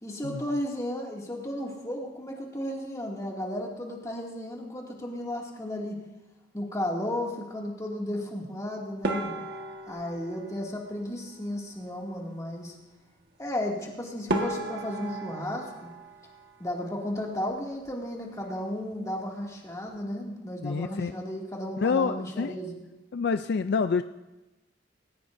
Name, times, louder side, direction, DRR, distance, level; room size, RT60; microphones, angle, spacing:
voice 1, 0.0-6.0 6.5-9.3 9.9-12.7 13.4-15.9 16.6-22.8, left 1 dB, 20° left, -2 dB, 2.4 m, -34 dB
sound 1, 9.0-11.5 13.8-13.9 14.3-17.1 17.3-18.1 18.4-18.6 18.9-19.0 19.6-20.0, right 1 dB, 60° right, 1.6 m, -35 dB
voice 2, 20.6-21.1 21.8-22.6 23.1-24.0, left 5 dB, 60° left, 10 dB, 0.4 m, -27 dB
19.5 x 18.0 x 2.7 m, 1.1 s
head